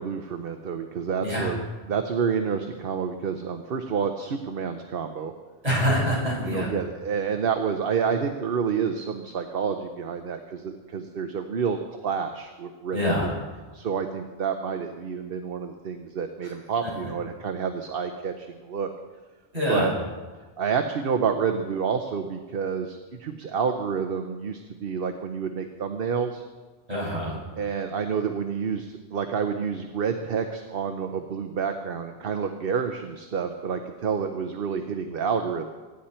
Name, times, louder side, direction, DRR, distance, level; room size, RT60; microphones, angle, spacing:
voice 1, 0.0-5.3 6.4-13.3 13.7-18.9 19.7-19.9 20.6-26.4 27.6-35.7, right 6 dB, 55° right, 6 dB, 1.0 m, -29 dB
voice 2, 5.6-6.7 12.9-13.3 16.4-16.5 19.5-19.9 26.9-27.3, equal, 35° right, -6 dB, 6.5 m, -25 dB
24.0 x 10.0 x 4.4 m, 1.3 s
omnidirectional pair, 1.2 m